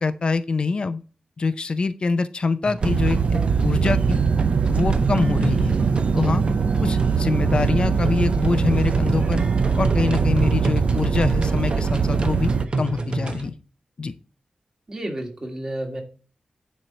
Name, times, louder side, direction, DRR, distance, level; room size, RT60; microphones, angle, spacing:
voice 1, 0.0-1.0 1.4-4.2 4.7-5.8 6.1-6.4 6.8-9.4 9.8-13.5 14.0-14.1, left 4 dB, 45° left, 11 dB, 0.5 m, -25 dB
sound 1, 2.6-13.5, right 3 dB, 45° right, 0.9 m, -31 dB
sound 2, 2.8-12.7, right 5 dB, 65° right, 0.6 m, -21 dB
voice 2, 6.0-6.4 14.9-16.0, right 1 dB, 30° right, 2 dB, 2.2 m, -32 dB
10.0 x 4.4 x 6.6 m, 0.37 s
wide cardioid pair, 155°, 2 cm